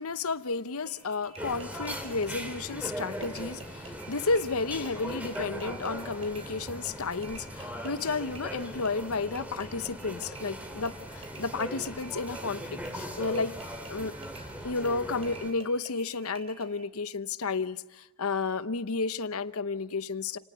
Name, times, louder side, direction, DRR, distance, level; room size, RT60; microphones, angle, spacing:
voice 1, 0.0-13.5 13.9-14.1 14.6-20.4, left 4 dB, 85° left, 0.9 m, -32 dB
sound 1, 0.9-16.9, right 4 dB, 30° right, 3.4 m, -51 dB
sound 2, 1.4-15.5, equal, 5° right, 3.2 m, -40 dB
30.0 x 19.0 x 8.2 m
head